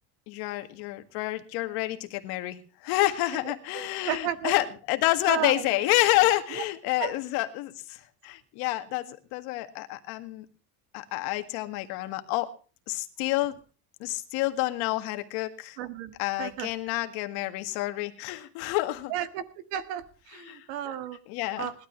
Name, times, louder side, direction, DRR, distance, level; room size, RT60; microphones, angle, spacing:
voice 1, 0.3-10.5 10.9-12.5 12.9-13.6 14.0-15.8 16.2-19.1 20.4-20.7 21.3-21.7, left 17 dB, 70° left, 8 dB, 1.9 m, -28 dB
voice 2, 3.4-4.5 5.3-5.8 6.6-6.7 7.0-7.1 15.8-16.1 16.4-16.7 19.1-19.4 19.7-21.2 21.6-21.7, right 11 dB, 70° right, 11 dB, 1.8 m, -33 dB
20.0 x 12.5 x 3.2 m, 0.37 s
cardioid pair, 170°, 40 cm